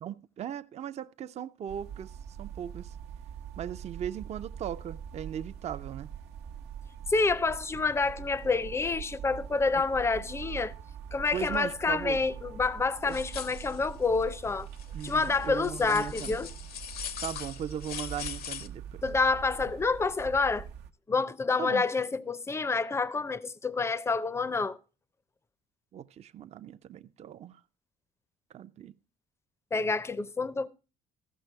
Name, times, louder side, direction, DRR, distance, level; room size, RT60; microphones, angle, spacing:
voice 1, 0.0-2.1 2.4-3.0 3.6-6.1 11.3-12.2 13.1-13.2 14.9-16.4 17.2-19.0 21.6-21.9 25.9-27.6 28.5-28.9, right 9 dB, 40° right, 0.4 m, -38 dB
sound 1, 1.7-20.9, right 8 dB, 90° right, 0.9 m, -43 dB
voice 2, 7.1-10.7 11.1-14.7 15.0-16.5 19.0-20.7 21.1-24.8 29.7-30.7, left 4 dB, 15° left, 0.5 m, -28 dB
sound 2, 13.1-13.9 14.2-14.3 14.8-18.7, left 8 dB, 65° left, 0.7 m, -41 dB
14.5 x 6.0 x 4.5 m
cardioid pair, 110°, 17 cm